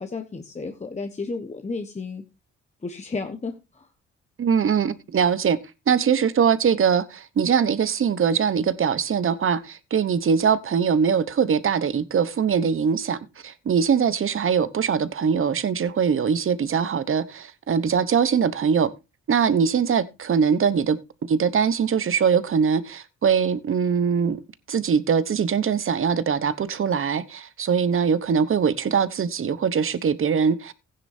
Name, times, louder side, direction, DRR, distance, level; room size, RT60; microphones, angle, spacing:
voice 1, 0.0-2.2 2.8-3.9, left 4 dB, 20° left, 1.2 m, -32 dB
voice 2, 4.4-5.6 5.9-18.9 19.3-24.4 24.7-30.7, right 6 dB, 45° right, 1.0 m, -22 dB
15.0 x 9.9 x 2.7 m
cardioid pair, 90°, 30 cm